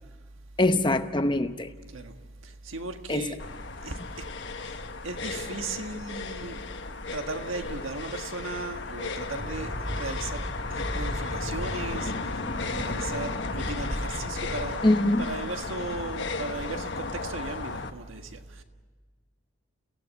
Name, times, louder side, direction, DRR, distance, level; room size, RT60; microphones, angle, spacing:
voice 1, 0.6-1.7 3.1-3.2 14.8-15.3, left 1 dB, 25° left, 0.9 m, -23 dB
voice 2, 2.4-3.4 3.8-4.3 4.6-4.8 5.0-6.6 7.1-14.8 15.2-18.6, right 3 dB, 85° right, 1.6 m, -37 dB
sound 1, 3.4-17.9, left 4 dB, 60° left, 1.3 m, -35 dB
sound 2, 9.4-14.7, equal, 25° right, 5.3 m, -36 dB
30.0 x 16.5 x 8.3 m
head